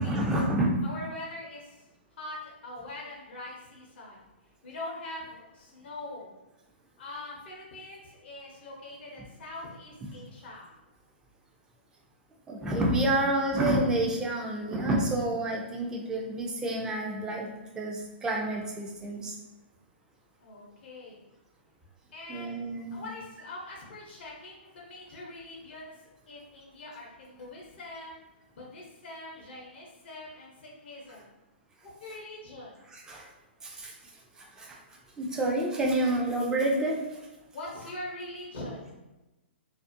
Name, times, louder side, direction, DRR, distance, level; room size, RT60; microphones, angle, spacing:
voice 1, 0.0-0.8 10.0-10.1 12.5-19.4 22.3-23.0 32.9-33.3 33.6-33.9 34.6-34.8 35.2-37.0, right 1 dB, 10° right, -1 dB, 0.4 m, -28 dB
voice 2, 0.8-1.8 2.1-2.4 2.6-4.2 4.6-6.3 7.0-10.7 20.4-21.2 22.1-22.5 22.9-28.2 28.5-31.2 31.8-32.7 37.5-39.0, left 2 dB, 65° left, -2 dB, 0.6 m, -43 dB
2.4 x 2.0 x 2.5 m, 1.0 s
hypercardioid pair, 135°, 6 cm